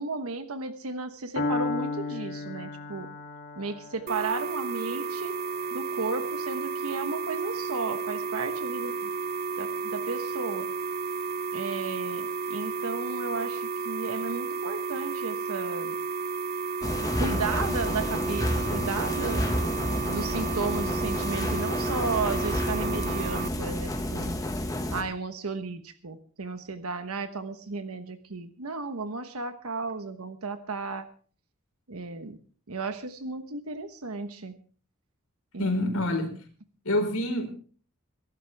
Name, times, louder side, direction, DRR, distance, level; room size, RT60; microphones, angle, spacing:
voice 1, 0.0-3.1 3.6-5.3 5.7-9.1 9.6-10.7 11.5-15.9 17.2-19.4 20.1-24.4 24.9-31.1 31.9-32.4 32.7-34.5 35.5-36.0, right 3 dB, 85° right, 9 dB, 1.2 m, -34 dB
Piano, 1.4-9.3, left 3 dB, 55° left, 2.3 m, -36 dB
sound 1, 4.1-23.5, right 5 dB, 45° right, 0.5 m, -32 dB
sound 2, 16.8-25.0, left 1 dB, 15° left, 1.7 m, -30 dB
voice 2, 35.6-36.4 36.8-37.5, left 1 dB, 80° left, 5 dB, 4.6 m, -27 dB
22.5 x 12.0 x 3.4 m, 0.42 s
head